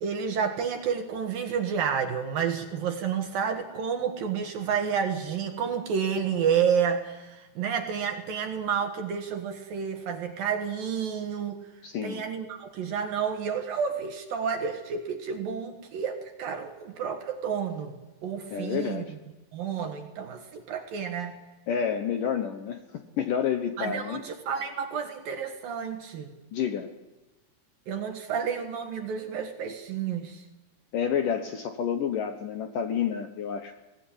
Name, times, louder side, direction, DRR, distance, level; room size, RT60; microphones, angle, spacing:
voice 1, 0.0-11.6 12.0-18.0 18.2-19.0 19.5-21.4 23.8-26.3 27.9-30.4, right 7 dB, 60° right, 6 dB, 2.8 m, -30 dB
voice 2, 11.8-12.3 18.5-19.1 21.7-24.2 26.5-26.9 30.9-33.7, left 8 dB, 70° left, 7 dB, 2.0 m, -29 dB
23.5 x 18.5 x 9.9 m, 1.1 s
omnidirectional pair, 5.4 m